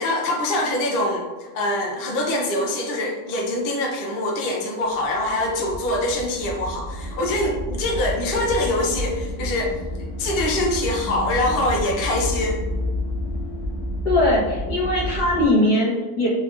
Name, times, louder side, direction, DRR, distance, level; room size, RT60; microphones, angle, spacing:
voice 1, 0.0-9.7 10.2-12.6, left 1 dB, 55° left, -1 dB, 0.6 m, -24 dB
sound 1, 5.0-15.5, left 1 dB, 25° right, 1.2 m, -30 dB
voice 2, 14.0-16.3, left 1 dB, 80° left, -5 dB, 1.6 m, -20 dB
4.2 x 2.6 x 2.3 m, 1.2 s
omnidirectional pair, 1.7 m